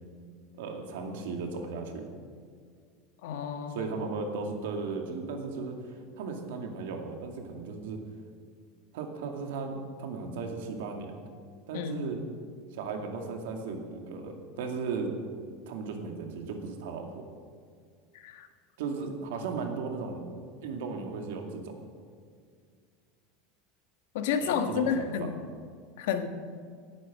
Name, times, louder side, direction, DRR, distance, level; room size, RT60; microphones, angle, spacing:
voice 1, 0.6-2.1 3.7-8.0 8.9-11.2 11.7-12.2 12.7-15.1 15.7-17.3 18.8-20.3 20.6-21.8 24.4-25.3, right 4 dB, 85° right, 3 dB, 2.3 m, -36 dB
voice 2, 3.2-3.9 11.7-12.1 18.1-18.5 24.1-25.4 26.0-26.3, left 7 dB, 75° left, 7 dB, 1.3 m, -30 dB
17.5 x 9.6 x 6.2 m, 2.1 s
supercardioid pair, 175°, 0 cm